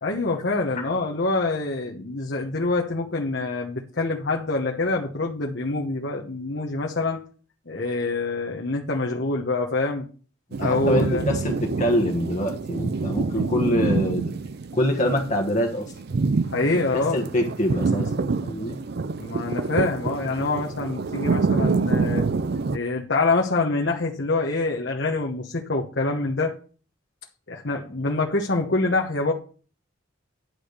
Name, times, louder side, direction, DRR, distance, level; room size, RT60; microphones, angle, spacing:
voice 1, 0.0-7.2 7.7-10.1 10.6-11.2 16.5-17.2 19.2-22.3 22.7-26.6 27.5-29.3, left 3 dB, 60° left, 1.2 m, -25 dB
sound 1, 10.5-22.8, right 4 dB, 55° right, 0.5 m, -26 dB
voice 2, 10.6-14.3 14.7-15.9 16.9-18.8, left 1 dB, 40° left, 1.4 m, -25 dB
11.0 x 5.0 x 6.7 m
head